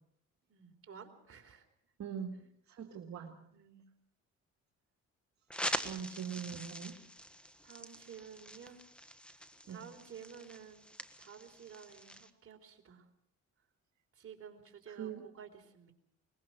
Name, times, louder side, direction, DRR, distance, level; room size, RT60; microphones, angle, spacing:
voice 1, 0.5-1.7 3.5-3.8 5.7-5.9 7.6-8.8 9.4-10.9 11.2-13.1 14.1-15.9, right 7 dB, 50° right, 3 dB, 3.9 m, -53 dB
voice 2, 2.0-3.4 5.8-7.0 9.7-9.9 14.9-15.2, right 8 dB, 65° right, 1 dB, 2.2 m, -42 dB
sound 1, 5.5-12.3, equal, 5° left, 1.5 m, -44 dB
22.5 x 21.0 x 6.2 m, 0.71 s
cardioid pair, 90°, 30 cm